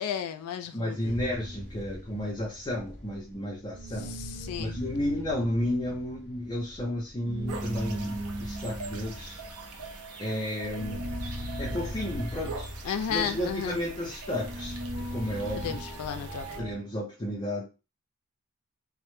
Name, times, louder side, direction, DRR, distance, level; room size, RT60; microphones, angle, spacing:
voice 1, 0.0-1.2 4.0-4.8 12.8-13.8 15.6-16.6, left 8 dB, 85° left, 0.3 m, -33 dB
voice 2, 0.7-4.1 4.6-9.4 10.2-11.1 11.6-12.7 13.1-14.8 15.1-15.8 16.6-17.7, left 1 dB, 20° left, 0.5 m, -32 dB
sound 1, 1.0-3.4 3.7-16.8, equal, 60° right, 0.7 m, -39 dB
sound 2, 7.5-16.6, right 4 dB, 85° right, 0.4 m, -43 dB
2.0 x 2.0 x 3.0 m
head